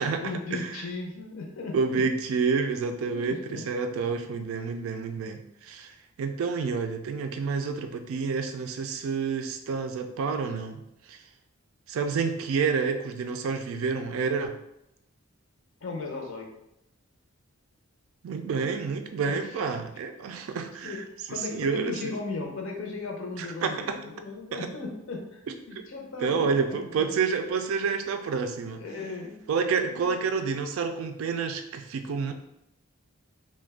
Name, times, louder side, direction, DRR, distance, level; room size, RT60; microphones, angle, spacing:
voice 1, 0.2-2.0 3.1-3.6 15.8-16.5 19.2-19.6 20.8-21.0 21.3-27.2 28.8-29.4 29.9-30.1, left 3 dB, 65° left, 0 dB, 0.6 m, -37 dB
voice 2, 1.7-5.9 6.2-10.8 11.1-11.2 11.9-14.5 18.2-21.0 21.3-22.1 23.4-24.0 24.5-24.7 26.2-28.8 29.5-32.3, right 5 dB, 75° right, 7 dB, 0.3 m, -29 dB
2.4 x 2.2 x 3.4 m, 0.83 s
head